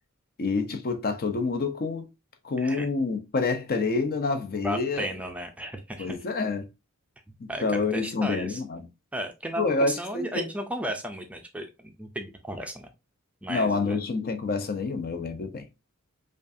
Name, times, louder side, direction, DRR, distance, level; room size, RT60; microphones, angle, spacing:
voice 1, 0.4-2.1 2.4-5.1 6.0-6.7 7.4-8.9 9.6-10.5 13.5-15.6, left 3 dB, 45° left, 0.6 m, -27 dB
voice 2, 2.6-2.9 4.6-6.2 7.5-8.6 9.1-12.9 13.4-14.0, right 1 dB, 5° right, 0.4 m, -34 dB
5.0 x 2.4 x 2.6 m
head